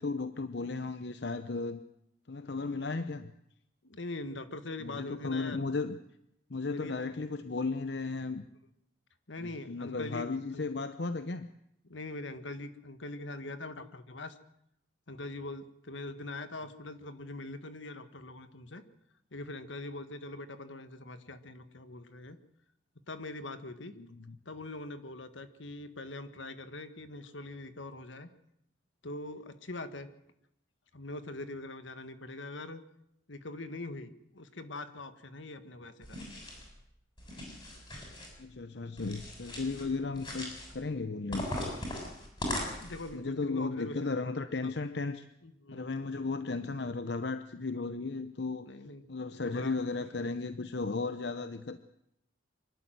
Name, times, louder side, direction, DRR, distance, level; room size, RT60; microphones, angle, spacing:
voice 1, 0.0-1.8 2.3-3.3 4.8-6.0 6.5-8.4 9.4-11.5 24.0-24.4 38.4-41.5 43.1-45.2 45.7-48.7 49.1-51.8, left 3 dB, 60° left, 11 dB, 0.8 m, -35 dB
voice 2, 3.8-5.6 6.7-6.9 9.3-10.3 10.5-10.7 11.9-14.4 15.1-18.8 19.3-22.4 23.1-23.9 24.5-28.3 29.0-30.1 30.9-32.8 33.3-36.5 42.7-44.2 44.6-44.7 45.4-45.9 48.7-49.0 49.4-49.7, left 2 dB, 80° left, 10 dB, 1.7 m, -42 dB
sound 1, 36.0-36.7 37.2-38.3 39.0-39.9 40.1-40.7 41.3-43.1, left 1 dB, 25° left, 7.2 m, -39 dB
25.0 x 12.5 x 9.2 m, 0.79 s
head